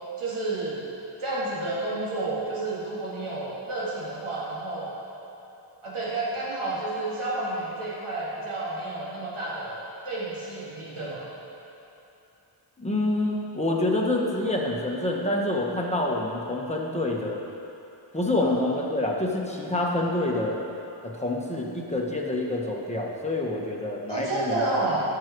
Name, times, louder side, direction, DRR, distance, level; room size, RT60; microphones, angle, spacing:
voice 1, 0.2-0.8 1.2-4.9 5.8-9.8 10.0-11.3 18.4-18.5 24.1-25.0, right 2 dB, 80° right, -8 dB, 2.9 m, -30 dB
voice 2, 12.8-17.4 18.1-20.6 21.0-24.8, left 1 dB, 15° left, -2 dB, 1.4 m, -27 dB
17.0 x 6.2 x 4.7 m, 2.9 s
wide cardioid pair, 100°, 49 cm